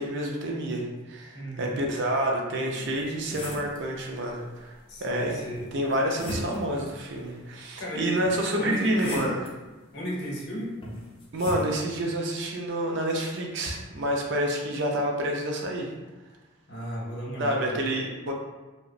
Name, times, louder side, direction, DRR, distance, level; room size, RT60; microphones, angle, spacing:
voice 1, 0.0-5.4 5.7-9.4 11.3-15.9 17.4-18.3, right 1 dB, 55° right, 0 dB, 0.4 m, -28 dB
voice 2, 1.3-1.7 4.9-5.6 7.8-8.1 8.6-9.3 9.9-10.7 16.7-17.8, equal, 55° left, -4 dB, 0.7 m, -34 dB
sound 1, 2.8-3.8 5.5-6.8 8.2-9.5 10.8-11.7, left 1 dB, 25° left, 0.3 m, -38 dB
2.7 x 2.0 x 2.5 m, 1.2 s
head